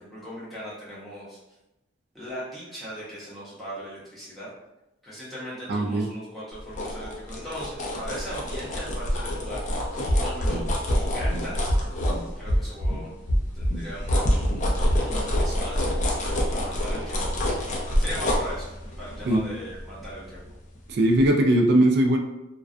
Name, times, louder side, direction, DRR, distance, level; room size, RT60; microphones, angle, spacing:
voice 1, 0.0-1.4 2.1-4.5 5.0-10.6 10.9-11.8 12.4-13.1 13.5-14.7 15.1-17.3 18.0-18.7 19.0-20.4, equal, ahead, -10 dB, 0.8 m, -39 dB
voice 2, 5.7-6.1 19.2-19.4 20.9-22.2, right 1 dB, 55° right, 3 dB, 0.3 m, -20 dB
sound 1, 6.5-12.8 13.2-20.8 21.1-21.3, left 1 dB, 40° left, 0.4 m, -28 dB
sound 2, 10.1-10.5 10.9-11.3 11.7-12.1 12.5-12.9 13.3-13.7 14.1-14.6 14.9-15.0, equal, 85° left, 0.7 m, -22 dB
2.3 x 2.2 x 2.5 m, 0.93 s
head